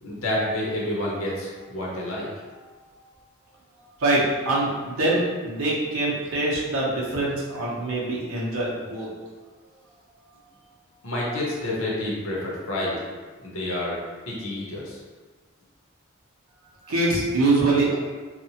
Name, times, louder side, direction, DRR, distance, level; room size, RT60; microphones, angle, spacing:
voice 1, 0.0-2.3 11.0-13.0 13.4-14.0 14.3-15.0, left 1 dB, 75° left, -4 dB, 0.7 m, -29 dB
voice 2, 4.0-9.1 16.8-18.0, right 2 dB, 85° right, -6 dB, 0.6 m, -24 dB
2.8 x 2.1 x 2.7 m, 1.4 s
head